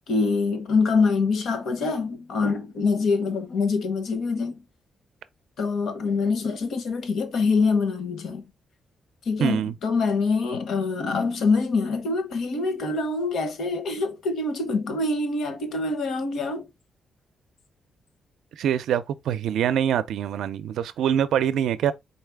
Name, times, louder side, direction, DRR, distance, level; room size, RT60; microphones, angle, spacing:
voice 1, 0.1-4.6 5.6-8.4 9.3-16.7, left 4 dB, 60° left, 0.9 m, -25 dB
voice 2, 9.4-9.7 18.6-21.9, right 9 dB, 85° right, 0.4 m, -24 dB
4.3 x 3.2 x 3.4 m
wide cardioid pair, 180°, 0 cm